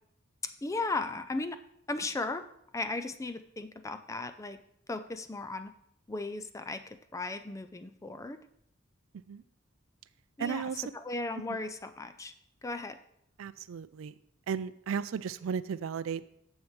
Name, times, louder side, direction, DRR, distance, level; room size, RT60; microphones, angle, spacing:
voice 1, 0.6-1.6 1.9-2.5 2.7-4.6 4.9-5.7 6.1-8.4 10.4-10.6 11.0-12.3 12.6-13.0, left 3 dB, 15° left, 9 dB, 0.4 m, -36 dB
voice 2, 10.4-10.9 11.5-11.6 13.4-14.1 14.5-16.2, right 7 dB, 75° right, 16 dB, 0.4 m, -35 dB
9.5 x 7.2 x 3.1 m, 0.73 s
head